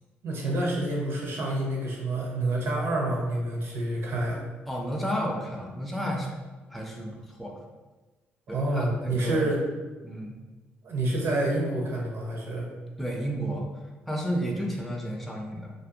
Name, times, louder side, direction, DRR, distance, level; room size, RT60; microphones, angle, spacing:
voice 1, 0.2-4.4 8.5-9.6 10.8-12.7, right 1 dB, 65° right, -2 dB, 0.7 m, -28 dB
voice 2, 4.7-6.3 6.7-7.6 8.5-9.5 10.0-10.3 13.0-13.7 14.1-15.7, equal, ahead, -1 dB, 0.4 m, -32 dB
2.5 x 2.0 x 2.7 m, 1.2 s
supercardioid pair, 70°, 4 cm